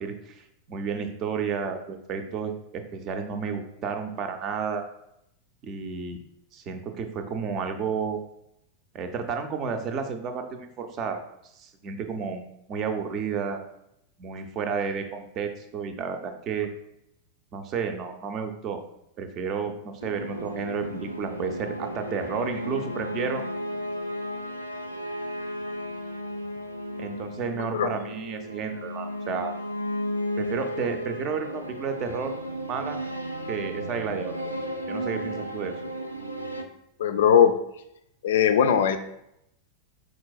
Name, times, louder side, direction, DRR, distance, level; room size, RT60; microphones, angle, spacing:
voice 1, 0.0-4.8 5.6-6.2 6.5-8.2 8.9-11.2 11.5-13.6 14.2-16.7 17.5-18.8 19.2-23.4 27.0-29.5 30.4-32.3 32.7-33.0 33.5-34.4 34.9-35.8, right 6 dB, 35° right, 6 dB, 0.5 m, -31 dB
sound 1, 20.0-36.6, equal, 90° right, 0.4 m, -34 dB
voice 2, 37.0-37.5 38.2-39.0, left 8 dB, 60° left, 9 dB, 0.4 m, -19 dB
4.5 x 3.9 x 2.3 m, 0.79 s
figure-of-eight pair, 90°, 0 cm